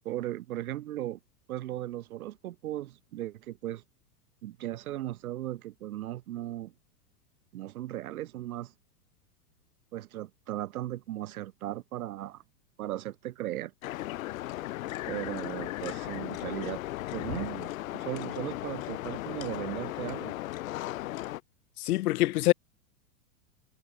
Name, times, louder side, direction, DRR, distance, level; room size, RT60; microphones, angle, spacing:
voice 1, 0.1-1.2 1.5-3.8 4.4-6.7 7.5-8.7 9.9-12.4 12.8-13.7 15.1-16.8 17.1-20.3, right 14 dB, 75° right, 1.8 m, -37 dB
sound 1, 13.8-21.4, left 16 dB, 65° left, 2.0 m, -36 dB
voice 2, 21.8-22.5, left 17 dB, 85° left, 0.6 m, -25 dB
hypercardioid pair, 135°, 44 cm